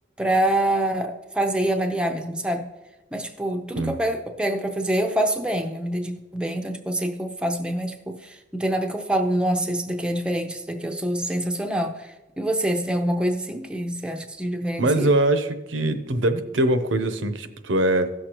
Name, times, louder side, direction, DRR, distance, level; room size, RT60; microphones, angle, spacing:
voice 1, 0.2-2.7 3.1-15.1, right 1 dB, 5° right, 3 dB, 0.5 m, -26 dB
voice 2, 14.8-18.1, right 1 dB, 80° right, 9 dB, 0.7 m, -22 dB
16.5 x 6.5 x 3.0 m, 1.1 s
head